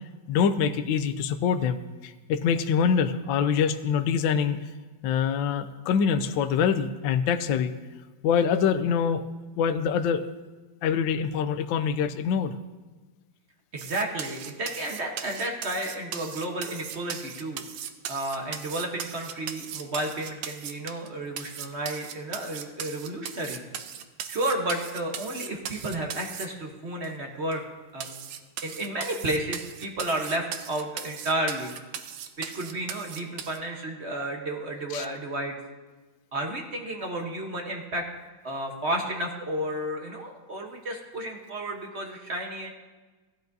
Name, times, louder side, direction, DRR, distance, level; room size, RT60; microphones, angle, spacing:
voice 1, 0.0-4.7 5.0-7.7 8.2-9.2 9.6-10.3 10.8-12.5 34.9-35.1, left 7 dB, 80° left, 10 dB, 1.3 m, -25 dB
voice 2, 13.7-17.6 18.1-23.6 24.3-27.6 27.9-28.2 28.6-31.7 32.4-35.6 36.3-38.1 38.4-42.7, right 1 dB, 40° right, 1 dB, 1.1 m, -32 dB
sound 1, 13.8-21.1 21.4-26.5 27.0-27.1 27.5-27.6 28.0-33.6, right 9 dB, 80° right, 1.4 m, -38 dB
16.0 x 11.5 x 2.7 m, 1.3 s
omnidirectional pair, 2.2 m